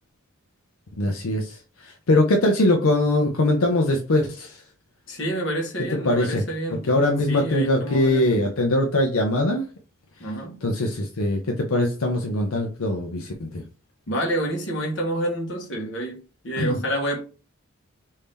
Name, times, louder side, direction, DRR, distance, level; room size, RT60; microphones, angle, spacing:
voice 1, 1.0-4.6 6.0-6.4 6.7-9.7 10.6-13.6 16.6-16.8, left 1 dB, 80° left, 0.7 m, -22 dB
voice 2, 5.1-6.9 7.3-8.4 10.2-10.6 14.1-17.2, right 1 dB, 55° left, 1.2 m, -28 dB
3.5 x 2.7 x 3.3 m
head